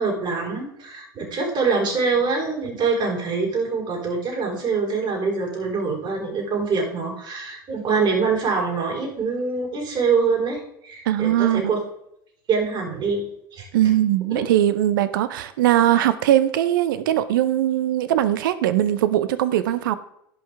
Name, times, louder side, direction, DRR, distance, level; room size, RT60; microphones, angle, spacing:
voice 1, 0.0-11.8 12.5-13.2 13.5-13.7 14.3-14.4, right 4 dB, 40° right, -1 dB, 4.7 m, -24 dB
voice 2, 11.1-11.8 13.7-19.9, right 12 dB, 70° right, 14 dB, 0.7 m, -20 dB
17.0 x 5.7 x 3.5 m, 0.75 s
hypercardioid pair, 75°, 12 cm